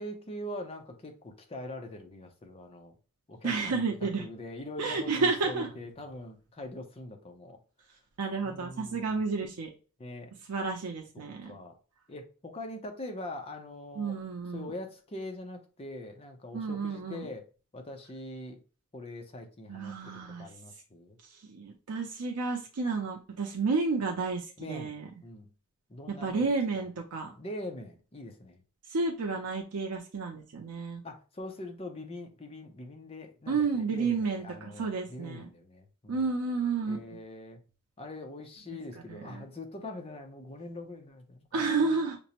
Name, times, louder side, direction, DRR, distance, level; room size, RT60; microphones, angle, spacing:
voice 1, 0.0-2.9 3.3-7.6 8.4-9.2 10.0-10.3 11.1-11.7 12.1-14.2 14.5-17.4 17.7-18.6 18.9-21.2 24.6-25.0 25.2-25.5 25.9-26.8 27.3-28.6 31.0-36.3 36.9-37.6 38.0-42.0, left 1 dB, 25° left, 0.6 m, -43 dB
voice 2, 3.4-4.3 4.8-5.7 8.2-9.7 10.5-11.5 14.0-14.7 16.5-17.3 19.7-20.5 21.4-25.1 26.1-27.3 28.9-31.0 33.5-35.5 36.1-37.0 39.1-39.4 41.5-42.2, right 4 dB, 85° right, 0.5 m, -31 dB
5.1 x 2.0 x 2.9 m
head